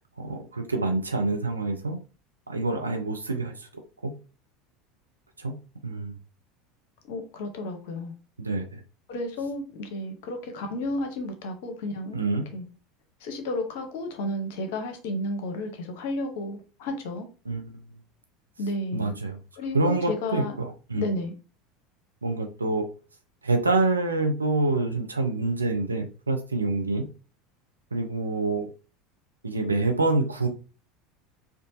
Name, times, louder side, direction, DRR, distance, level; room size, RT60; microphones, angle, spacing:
voice 1, 0.2-2.0 2.5-3.7 4.0-4.1 5.4-5.5 5.8-6.2 8.4-8.8 12.1-12.4 17.5-17.8 18.9-19.4 19.7-21.1 22.2-22.8 23.4-27.0 27.9-28.7 29.4-30.5, right 2 dB, 85° right, 0.6 m, -26 dB
voice 2, 7.1-8.1 9.1-12.2 12.5-12.7 13.2-17.3 18.6-19.1 19.6-20.6 21.0-21.3, left 1 dB, 60° left, 0.9 m, -32 dB
4.5 x 2.5 x 2.7 m
figure-of-eight pair, 75°, 0 cm